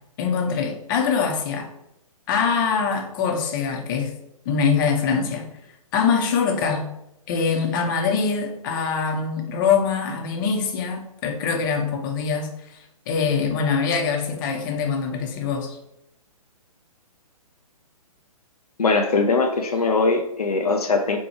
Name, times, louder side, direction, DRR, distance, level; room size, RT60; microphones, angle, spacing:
voice 1, 0.2-1.7 2.3-4.1 4.4-5.5 5.9-6.9 7.3-15.8, left 5 dB, 35° left, 3 dB, 0.7 m, -23 dB
voice 2, 18.8-21.2, left 3 dB, 85° left, 4 dB, 0.5 m, -21 dB
4.3 x 2.3 x 4.3 m, 0.81 s
figure-of-eight pair, 125°, 19 cm